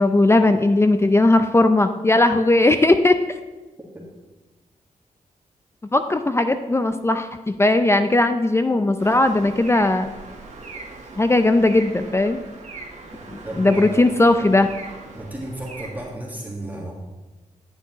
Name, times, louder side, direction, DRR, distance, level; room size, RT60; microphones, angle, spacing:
voice 1, 0.0-3.2 5.9-10.1 11.2-12.4 13.6-14.7, left 2 dB, 20° left, 8 dB, 0.5 m, -18 dB
sound 1, 9.0-16.1, right 3 dB, 60° right, 1.3 m, -40 dB
voice 2, 13.4-14.1 15.1-16.9, right 1 dB, 10° right, -2 dB, 1.6 m, -33 dB
10.5 x 6.9 x 3.0 m, 1.2 s
cardioid pair, 55°, 14 cm